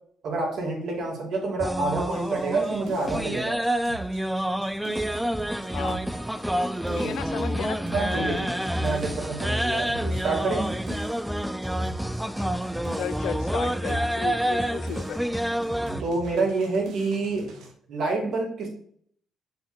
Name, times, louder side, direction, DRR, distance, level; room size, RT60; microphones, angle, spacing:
voice 1, 0.2-3.6 7.9-10.7 16.0-17.5 17.9-18.7, right 3 dB, 70° right, -2 dB, 2.8 m, -28 dB
sound 1, 1.6-16.0, equal, 5° right, 0.4 m, -28 dB
sound 2, 1.9-17.7, right 4 dB, 85° right, 1.2 m, -45 dB
voice 2, 6.9-7.8 8.1-8.4 12.4-12.5 13.0-15.2, left 10 dB, 80° left, 15 dB, 0.4 m, -34 dB
7.2 x 5.2 x 2.7 m, 0.63 s
cardioid pair, 90°, 0 cm